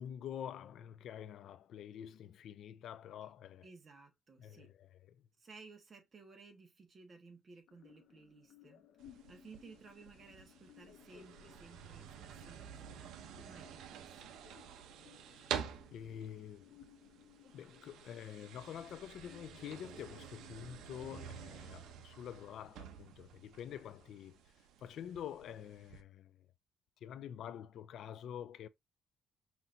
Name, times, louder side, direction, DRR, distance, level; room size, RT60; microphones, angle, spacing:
voice 1, 0.0-3.7 4.4-5.2 15.9-16.8 17.5-24.4 24.8-26.4 27.0-28.7, left 9 dB, 65° left, 0.3 m, -47 dB
voice 2, 3.6-4.7 5.4-8.9 9.3-14.5, right 4 dB, 30° right, 1.2 m, -57 dB
sound 1, 7.7-23.7, left 10 dB, 80° left, 0.8 m, -62 dB
sound 2, 9.0-26.0, right 9 dB, 85° right, 0.6 m, -49 dB
5.7 x 2.9 x 2.5 m
cardioid pair, 150°, 0 cm